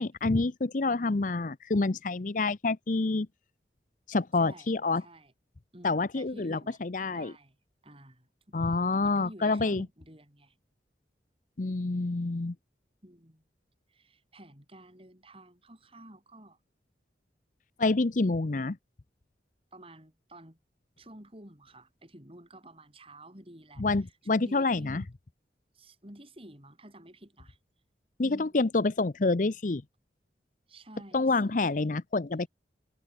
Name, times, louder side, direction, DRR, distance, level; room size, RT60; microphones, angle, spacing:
voice 1, 0.0-3.3 4.1-5.0 5.8-7.3 8.5-9.9 11.6-12.5 17.8-18.8 23.8-25.0 28.2-29.8 31.1-32.5, left 3 dB, 45° left, 0.7 m, -27 dB
voice 2, 4.3-4.7 5.0-5.3 5.7-6.8 7.1-7.6 7.8-10.6 13.0-13.4 13.9-16.6 19.7-20.6 21.0-25.1 25.7-27.6 28.2-28.6 30.7-31.6, right 1 dB, 30° right, 7.3 m, -51 dB
head